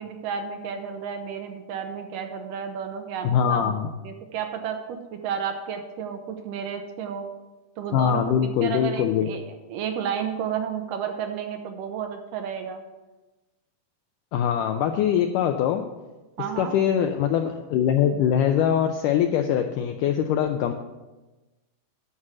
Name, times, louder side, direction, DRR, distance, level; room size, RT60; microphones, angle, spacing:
voice 1, 0.0-7.3 7.8-9.4 9.7-12.8 16.4-16.7, right 7 dB, 75° right, 5 dB, 2.2 m, -32 dB
voice 2, 3.2-3.9 7.9-9.3 14.3-15.8 16.6-20.7, left 9 dB, 85° left, 5 dB, 1.8 m, -22 dB
9.8 x 6.3 x 7.2 m, 1.1 s
omnidirectional pair, 4.3 m